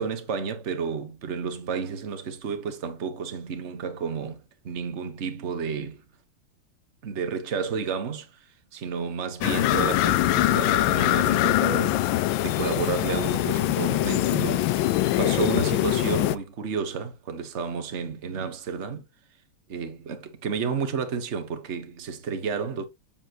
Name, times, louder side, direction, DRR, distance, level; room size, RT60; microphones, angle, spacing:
voice 1, 0.0-5.9 7.0-8.3 8.7-12.0 12.4-19.0 19.7-22.8, right 6 dB, 40° right, 1.4 m, -31 dB
sound 1, 9.4-16.4, left 15 dB, 75° left, 1.3 m, -23 dB
7.5 x 7.2 x 3.0 m
omnidirectional pair, 2.2 m